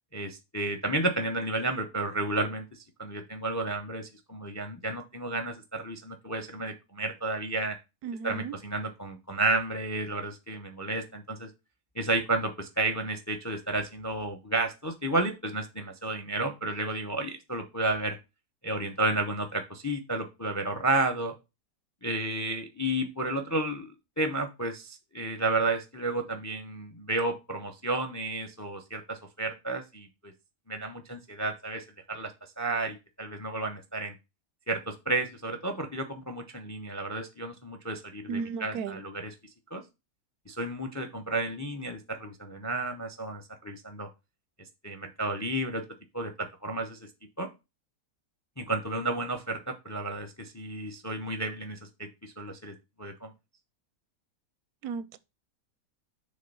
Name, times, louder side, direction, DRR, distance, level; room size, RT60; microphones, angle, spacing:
voice 1, 0.1-2.7 3.0-7.8 8.2-11.5 12.0-18.2 18.6-21.3 22.0-23.9 24.2-30.3 30.7-32.3 32.6-34.1 34.7-39.3 39.7-39.8 40.5-44.1 44.8-45.8 46.1-47.0 47.4-47.5 48.6-53.3, right 2 dB, 20° left, 0.4 m, -32 dB
voice 2, 8.0-8.5 38.3-39.0 54.8-55.2, right 5 dB, 85° right, 1.1 m, -35 dB
6.4 x 3.5 x 5.4 m
omnidirectional pair, 1.6 m